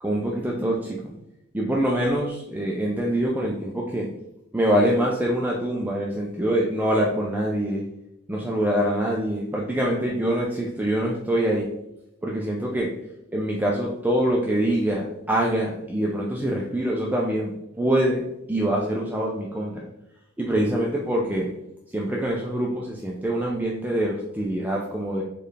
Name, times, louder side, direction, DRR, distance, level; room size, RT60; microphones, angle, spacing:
voice 1, 0.0-1.1 1.5-4.1 4.5-7.8 8.3-11.7 12.2-12.9 13.3-18.2 18.5-19.9 20.4-21.5 21.9-25.2, right 1 dB, 10° right, -3 dB, 0.4 m, -24 dB
4.4 x 3.2 x 3.3 m, 0.85 s
head